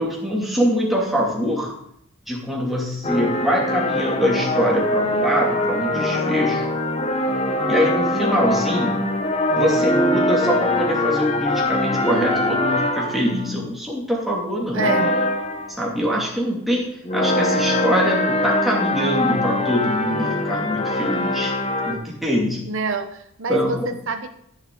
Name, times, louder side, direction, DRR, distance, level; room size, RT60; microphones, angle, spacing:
voice 1, 0.0-1.7 2.3-6.7 7.7-9.0 9.5-15.0 15.8-21.5 21.8-22.7 23.5-23.9, equal, ahead, -4 dB, 2.6 m, -23 dB
sound 1, 3.0-13.5 14.7-15.8 17.1-21.9, left 1 dB, 30° left, 1.1 m, -22 dB
voice 2, 14.7-15.1 22.7-23.8 24.1-24.3, right 4 dB, 60° right, 7 dB, 1.0 m, -26 dB
15.0 x 7.3 x 3.9 m, 0.73 s
head